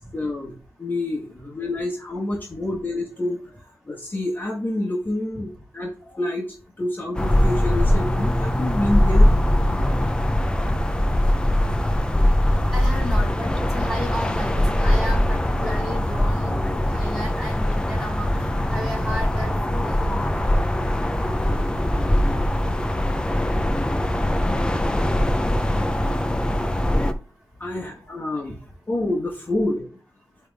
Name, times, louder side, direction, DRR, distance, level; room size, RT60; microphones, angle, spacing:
voice 1, 0.0-9.3 10.8-10.9 11.4-11.5 23.9-25.0 25.7-25.9 26.6-26.7 27.6-28.6 28.9-29.9, left 1 dB, 30° left, -1 dB, 1.5 m, -28 dB
sound 1, 7.1-27.1, left 1 dB, 15° left, 0.7 m, -21 dB
voice 2, 12.7-20.4 22.1-22.2, equal, 10° right, -5 dB, 3.7 m, -34 dB
9.2 x 3.5 x 3.5 m, 0.38 s
wide cardioid pair, 90°, 6 cm